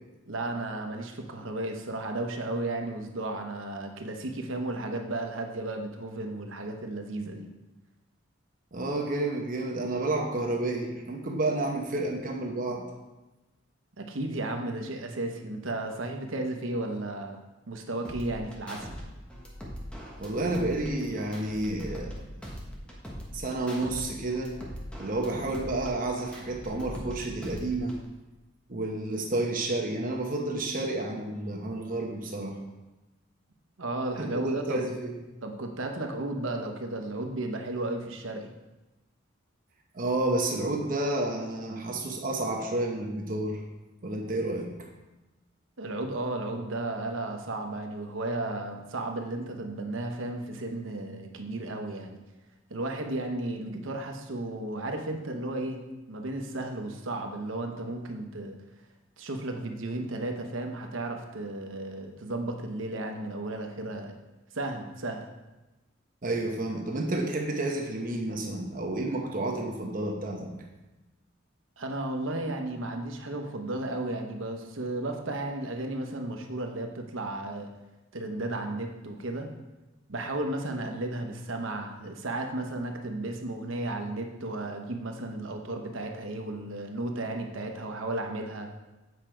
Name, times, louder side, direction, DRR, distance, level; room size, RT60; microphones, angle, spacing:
voice 1, 0.3-7.5 14.0-17.4 17.7-18.9 33.8-34.9 35.4-38.5 45.8-52.2 52.7-55.8 56.1-58.6 59.2-64.1 64.5-65.2 71.8-77.7 78.1-79.5 80.1-88.7, right 2 dB, 85° right, 3 dB, 1.0 m, -34 dB
voice 2, 8.7-12.9 20.2-22.1 23.3-24.6 25.0-28.0 28.7-32.6 34.2-35.2 39.9-43.6 44.0-44.7 66.2-70.5, right 2 dB, 45° right, 1 dB, 0.9 m, -30 dB
sound 1, 18.0-19.0 19.3-22.2 22.4-24.0 24.3-27.1 27.4-28.0, equal, 5° left, 1.2 m, -41 dB
8.1 x 5.1 x 4.5 m, 1.1 s
head